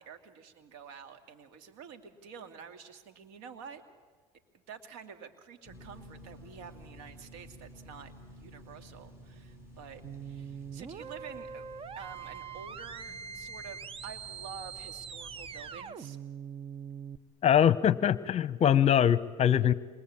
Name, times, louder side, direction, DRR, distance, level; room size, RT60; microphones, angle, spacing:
voice 1, 0.0-3.8 4.7-8.1 8.4-11.6 12.0-16.2, right 6 dB, 75° right, 7 dB, 2.5 m, -48 dB
sound 1, 5.6-15.8, equal, 15° right, 7.6 m, -52 dB
sound 2, 10.0-17.2, right 7 dB, 35° right, 0.9 m, -43 dB
voice 2, 17.4-19.7, left 9 dB, 40° left, 17 dB, 1.0 m, -23 dB
27.5 x 23.0 x 8.8 m, 1.4 s
supercardioid pair, 90°, 17 cm